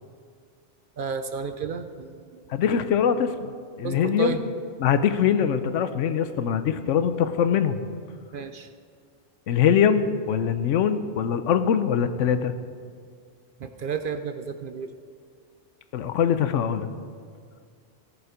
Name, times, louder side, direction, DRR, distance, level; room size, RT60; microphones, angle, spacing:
voice 1, 1.0-2.4 3.8-4.4 8.3-8.7 13.6-14.9, right 5 dB, 55° right, 8 dB, 0.6 m, -32 dB
voice 2, 2.5-3.5 3.8-4.3 4.8-7.8 9.5-12.5 15.9-16.9, left 8 dB, 85° left, 11 dB, 1.0 m, -23 dB
17.5 x 7.0 x 5.1 m, 2.1 s
omnidirectional pair, 1.2 m